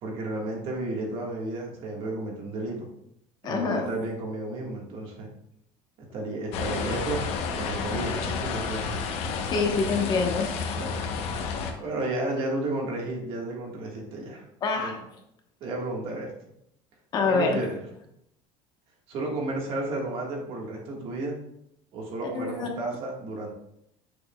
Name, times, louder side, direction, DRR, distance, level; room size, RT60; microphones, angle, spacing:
voice 1, 0.0-2.9 3.4-5.3 6.1-7.2 7.5-8.9 10.8-11.1 11.3-14.5 14.7-14.9 15.6-16.3 17.2-17.8 19.1-21.4 21.9-23.5, right 2 dB, 45° right, -1 dB, 1.6 m, -32 dB
voice 2, 3.4-3.9 9.5-10.5 14.6-15.0 17.1-17.6 22.3-22.7, left 4 dB, 35° left, 3 dB, 1.0 m, -25 dB
sound 1, 6.5-11.7, left 5 dB, 55° left, 0.9 m, -30 dB
6.8 x 6.4 x 2.3 m, 0.76 s
cardioid pair, 165°, 13 cm